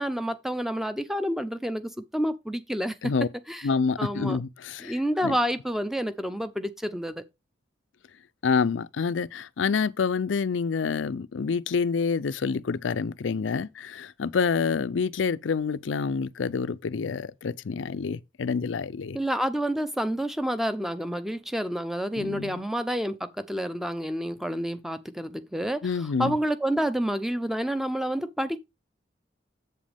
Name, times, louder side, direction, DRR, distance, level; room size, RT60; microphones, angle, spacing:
voice 1, 0.0-3.1 3.5-3.7 4.0-4.4 4.8-7.2 19.1-28.6, equal, ahead, 0.6 m, -29 dB
voice 2, 3.6-5.0 5.2-5.4 8.4-19.2 22.2-22.6 25.8-26.4, left 5 dB, 80° left, 0.5 m, -27 dB
8.1 x 7.4 x 3.4 m
head